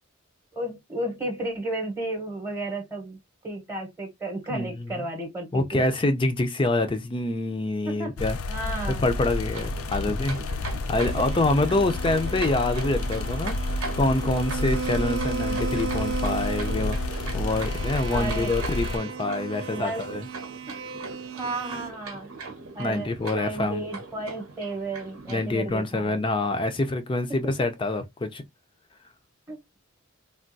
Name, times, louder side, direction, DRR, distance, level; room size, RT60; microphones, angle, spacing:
voice 1, 0.5-3.2 3.4-5.9 7.9-8.1 8.5-9.0 11.2-11.3 18.1-18.5 19.7-20.2 20.7-20.8 21.4-22.3 22.7-26.2 27.3-27.4 29.5-29.8, right 1 dB, 15° right, 0.8 m, -33 dB
voice 2, 4.5-5.0 5.5-8.4 9.0-13.5 14.0-17.0 17.3-20.2 22.8-23.8 25.3-28.4, left 2 dB, 25° left, 0.4 m, -26 dB
sound 1, 8.2-19.0, left 2 dB, 90° left, 0.5 m, -30 dB
sound 2, 9.4-25.6, right 3 dB, 85° right, 0.8 m, -40 dB
sound 3, 11.0-21.9, right 5 dB, 65° right, 0.4 m, -35 dB
3.4 x 2.3 x 2.6 m
head